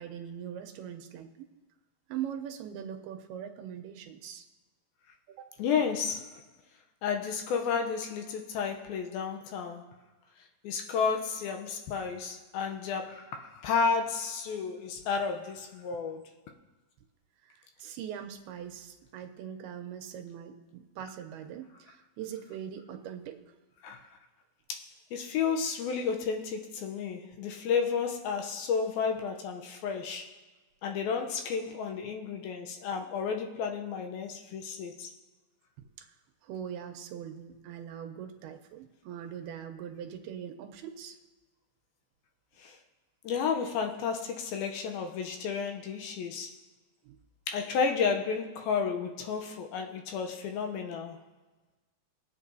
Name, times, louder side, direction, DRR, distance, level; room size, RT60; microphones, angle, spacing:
voice 1, 0.0-1.5 2.1-4.5 5.3-5.5 17.4-23.4 36.0-36.1 36.4-41.2 47.0-47.2, right 9 dB, 85° right, 5 dB, 2.6 m, -41 dB
voice 2, 5.6-6.4 7.0-9.8 10.6-16.2 23.8-24.0 24.7-24.9 25.1-30.3 30.8-35.1 42.6-42.8 43.2-46.5 47.5-51.2, left 6 dB, 80° left, 4 dB, 2.5 m, -32 dB
21.5 x 8.4 x 2.7 m, 1.2 s
omnidirectional pair, 4.6 m